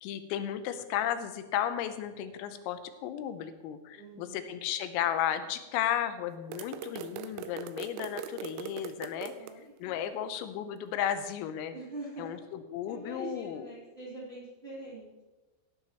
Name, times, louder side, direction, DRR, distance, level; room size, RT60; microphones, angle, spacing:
voice 1, 0.0-9.3 9.8-11.7 12.2-12.4 12.7-13.6, left 10 dB, 85° left, 9 dB, 3.4 m, -34 dB
voice 2, 3.9-4.6 9.3-10.3 11.7-12.4 12.9-15.1, right 2 dB, 15° right, -7 dB, 2.7 m, -44 dB
sound 1, 6.5-9.5, right 9 dB, 85° right, 2.9 m, -41 dB
17.5 x 10.5 x 3.0 m, 1.2 s
omnidirectional pair, 5.9 m